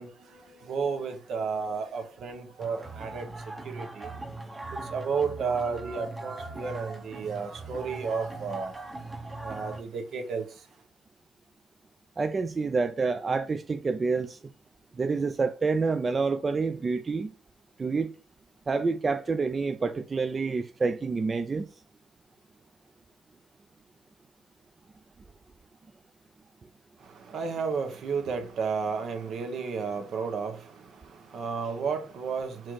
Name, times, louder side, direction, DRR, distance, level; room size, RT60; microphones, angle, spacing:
voice 1, 0.0-3.3 3.6-4.1 4.7-8.7 9.4-10.4 27.0-32.7, right 5 dB, 65° right, 0.9 m, -32 dB
sound 1, 2.6-9.8, right 2 dB, 15° right, 0.8 m, -40 dB
voice 2, 12.2-14.4 15.0-17.3 17.8-18.1 18.7-21.7, right 4 dB, 30° right, 0.3 m, -28 dB
4.4 x 2.5 x 4.6 m
cardioid pair, 90°, 0 cm